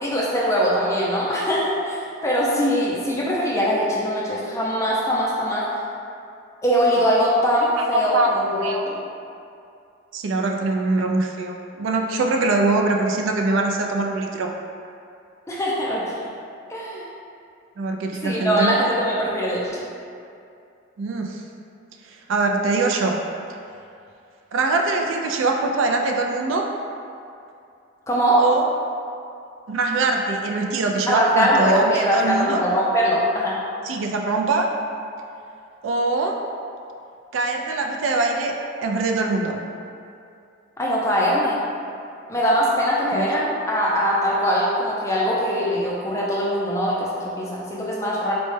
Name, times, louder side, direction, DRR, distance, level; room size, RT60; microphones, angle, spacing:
voice 1, 0.0-5.6 6.6-9.0 15.5-16.1 16.7-17.1 18.2-19.8 28.1-28.4 31.1-33.6 40.8-41.6 42.3-48.3, equal, 15° left, -5 dB, 0.4 m, -22 dB
voice 2, 7.9-8.3 8.6-8.8 10.1-14.5 17.8-18.8 21.0-21.4 22.1-23.2 24.5-26.7 28.4-28.7 29.7-32.6 33.8-34.7 35.8-36.4 37.3-38.5 38.8-39.6 43.1-43.2, right 3 dB, 70° right, 2 dB, 0.3 m, -23 dB
4.0 x 2.2 x 3.1 m, 2.5 s
head